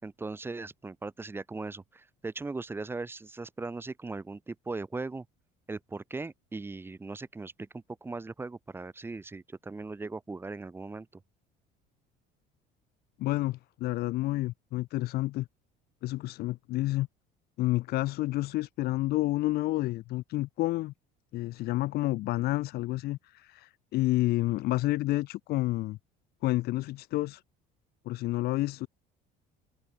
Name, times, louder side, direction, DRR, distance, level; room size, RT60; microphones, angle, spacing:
voice 1, 0.0-5.2 5.7-11.1, right 3 dB, 10° right, 3.6 m, -39 dB
voice 2, 13.2-15.5 16.0-17.1 17.6-20.9 21.3-26.0 26.4-27.4 28.0-28.9, left 17 dB, 55° left, 1.3 m, -29 dB
cardioid pair, 160°, 19 cm